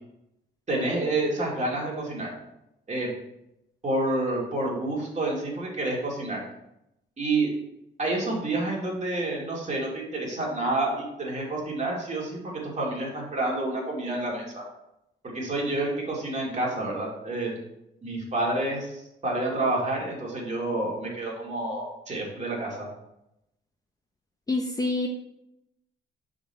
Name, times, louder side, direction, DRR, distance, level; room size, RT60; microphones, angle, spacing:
voice 1, 0.7-2.3 2.9-3.1 3.8-6.4 7.2-7.5 8.0-14.6 15.2-17.5 18.0-22.9, right 2 dB, 35° right, -3 dB, 2.2 m, -29 dB
voice 2, 24.5-25.1, left 2 dB, 20° left, 2 dB, 0.7 m, -26 dB
6.0 x 4.0 x 4.3 m, 0.86 s
cardioid pair, 90°, 20 cm